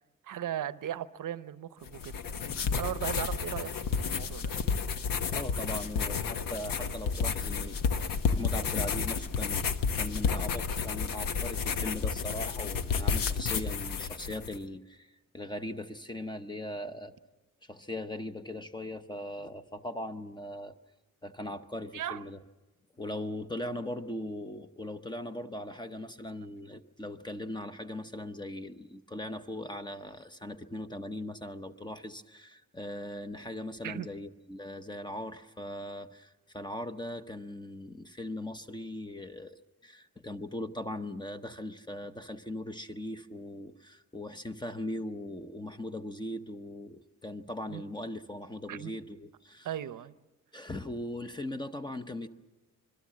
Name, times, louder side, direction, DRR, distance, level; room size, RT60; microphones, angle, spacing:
voice 1, 0.2-2.1 2.8-4.5 21.9-22.2 33.8-34.1 47.7-47.8 48.7-49.0 49.6-50.2, right 11 dB, 70° right, 0.7 m, -37 dB
sound 1, 1.9-14.6, left 6 dB, 85° left, 1.2 m, -31 dB
voice 2, 5.3-9.7 9.9-17.1 17.6-20.7 21.2-22.4 23.0-49.7 50.5-52.3, left 1 dB, 15° left, 0.7 m, -39 dB
26.0 x 22.0 x 7.5 m
wide cardioid pair, 175°, 33 cm